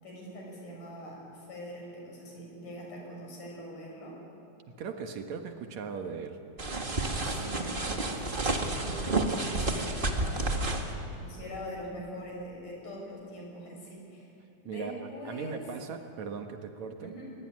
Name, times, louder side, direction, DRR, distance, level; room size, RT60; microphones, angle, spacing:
voice 1, 0.0-4.2 7.3-10.6 11.2-14.3 14.6-15.7 17.0-17.3, equal, 85° left, -1 dB, 8.1 m, -43 dB
voice 2, 4.8-6.4 14.7-17.1, right 5 dB, 65° right, 5 dB, 2.7 m, -38 dB
sound 1, 6.6-10.9, right 2 dB, 25° right, 1.3 m, -30 dB
23.5 x 21.5 x 9.7 m, 3.0 s
omnidirectional pair, 3.6 m